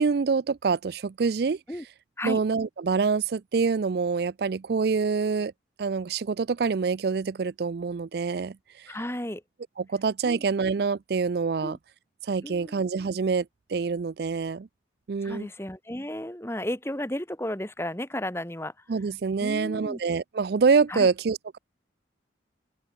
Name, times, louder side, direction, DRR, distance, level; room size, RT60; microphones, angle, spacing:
voice 1, 0.0-1.6 2.2-5.5 5.8-8.9 9.8-11.8 12.2-14.7 15.1-15.5 18.9-21.6, right 5 dB, 55° right, 0.4 m, -26 dB
voice 2, 8.9-9.4 10.2-10.4 11.6-11.8 12.4-12.8 15.2-18.7 19.4-20.0 20.9-21.1, left 1 dB, 15° left, 2.5 m, -33 dB
open air
head